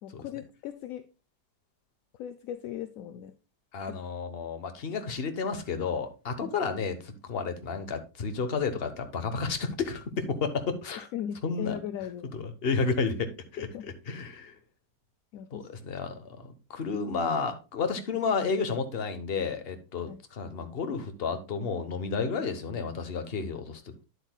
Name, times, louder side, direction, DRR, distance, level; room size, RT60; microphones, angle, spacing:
voice 1, 0.0-1.1 2.2-3.3 3.9-4.0 6.4-6.6 11.1-12.3 13.6-13.9 15.3-15.7 20.1-20.2, left 10 dB, 70° left, 0.8 m, -38 dB
voice 2, 3.7-11.1 11.4-11.8 12.3-14.5 15.5-24.0, left 5 dB, 40° left, 1.1 m, -32 dB
9.8 x 8.1 x 2.2 m
omnidirectional pair, 1.8 m